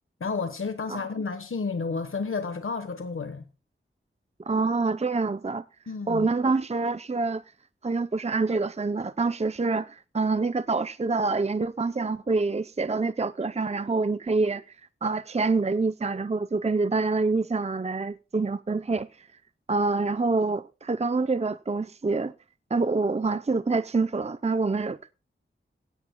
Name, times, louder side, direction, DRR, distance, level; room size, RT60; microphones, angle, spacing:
voice 1, 0.2-3.5 5.9-6.3, left 4 dB, 80° left, 1.2 m, -31 dB
voice 2, 4.5-5.6 6.1-7.4 7.8-14.6 15.0-19.3 19.7-22.3 22.7-25.1, right 3 dB, 30° right, 0.6 m, -26 dB
17.0 x 16.5 x 2.2 m
wide cardioid pair, 75°, 21 cm